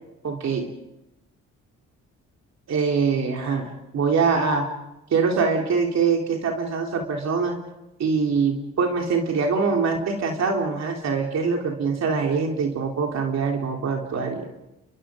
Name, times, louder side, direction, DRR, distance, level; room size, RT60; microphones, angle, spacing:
voice 1, 0.2-0.7 2.7-4.7 5.1-7.6 8.0-14.5, right 5 dB, 60° right, 1 dB, 3.6 m, -23 dB
29.0 x 23.0 x 5.1 m, 0.93 s
cardioid pair, 90°, 30 cm